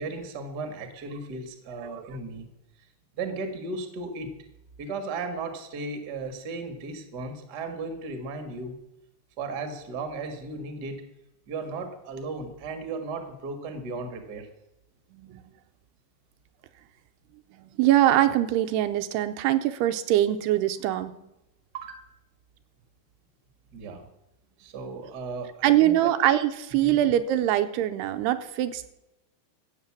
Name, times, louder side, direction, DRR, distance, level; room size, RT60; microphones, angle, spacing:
voice 1, 0.0-2.5 3.1-4.3 4.8-8.8 9.4-11.0 11.5-14.5 21.7-22.0 23.7-24.1 24.6-26.1 26.8-27.0, right 3 dB, 45° right, 6 dB, 1.4 m, -35 dB
voice 2, 1.8-2.2 15.1-15.4 17.6-21.1 25.6-28.9, right 13 dB, 85° right, 9 dB, 2.8 m, -23 dB
14.5 x 8.2 x 7.3 m, 0.90 s
omnidirectional pair, 4.7 m